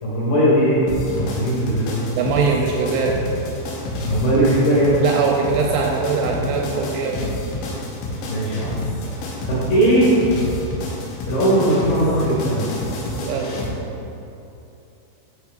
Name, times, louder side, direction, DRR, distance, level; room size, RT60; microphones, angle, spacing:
voice 1, 0.0-1.9 4.1-5.0 8.3-8.8 9.0-9.1 9.5-10.1 11.3-12.7, right 1 dB, 65° left, -8 dB, 2.5 m, -19 dB
sound 1, 0.9-13.7, left 1 dB, 85° left, 3.5 m, -29 dB
voice 2, 2.1-3.1 5.0-7.3 13.2-13.6, right 4 dB, 80° right, 0 dB, 2.7 m, -22 dB
12.0 x 5.9 x 2.4 m, 2.8 s
omnidirectional pair, 5.6 m